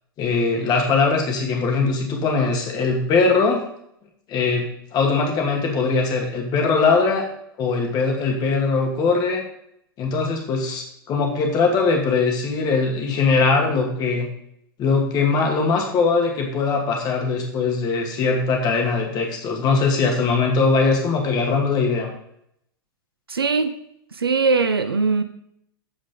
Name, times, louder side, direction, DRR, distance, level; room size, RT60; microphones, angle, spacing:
voice 1, 0.2-3.6 4.3-7.2 7.6-9.4 10.0-14.3 14.8-22.1, left 4 dB, 35° left, 1 dB, 2.5 m, -21 dB
voice 2, 23.3-23.8 24.1-25.2, right 4 dB, 80° right, 10 dB, 0.6 m, -20 dB
14.5 x 5.1 x 3.8 m, 0.73 s
figure-of-eight pair, 95°, 12 cm